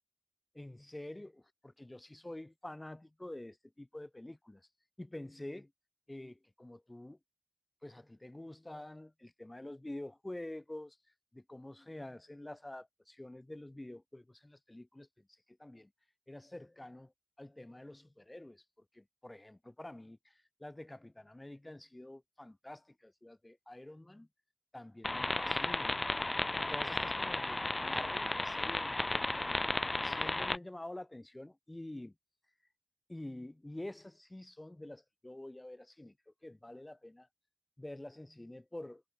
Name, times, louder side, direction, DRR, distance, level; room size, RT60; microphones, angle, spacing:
voice 1, 0.5-4.6 5.0-5.7 6.1-7.2 7.8-11.0 11.3-15.9 16.3-17.1 17.4-24.3 24.7-26.0 26.7-29.8 30.0-32.1 33.1-37.3 37.8-39.0, left 1 dB, 30° left, 2.7 m, -48 dB
sound 1, 25.0-30.6, left 2 dB, 45° left, 0.6 m, -34 dB
wide cardioid pair, 60°, 0 cm